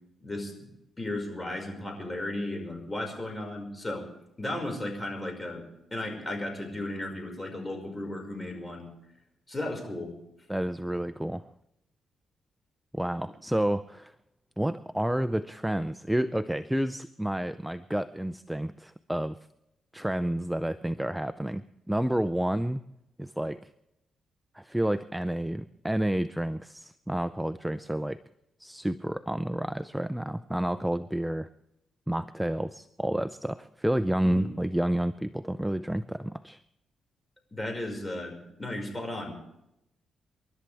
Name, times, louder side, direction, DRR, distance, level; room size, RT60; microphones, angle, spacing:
voice 1, 0.2-0.7 1.0-4.0 4.4-5.6 5.9-8.9 9.5-10.1 34.2-34.5 37.5-39.3, left 1 dB, 20° left, 3 dB, 5.4 m, -35 dB
voice 2, 10.5-11.4 12.9-14.1 14.6-19.4 19.9-22.8 23.2-23.6 24.5-28.2 28.6-31.5 32.1-36.6, right 1 dB, 5° right, 12 dB, 0.5 m, -30 dB
28.5 x 12.0 x 3.5 m, 0.84 s
cardioid pair, 95°, 0 cm